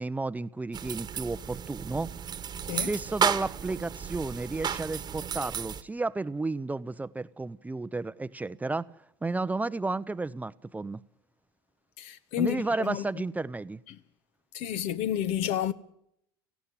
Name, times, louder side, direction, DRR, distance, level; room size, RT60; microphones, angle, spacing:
voice 1, 0.0-2.1 2.7-8.9 9.2-11.0 12.4-13.8, right 3 dB, 10° right, 0.7 m, -32 dB
sound 1, 0.7-5.8, right 8 dB, 35° right, 1.4 m, -33 dB
voice 2, 12.0-13.0 13.9-14.0 14.5-15.7, left 10 dB, 60° left, 1.3 m, -30 dB
18.5 x 15.5 x 9.9 m
hypercardioid pair, 70°, 12 cm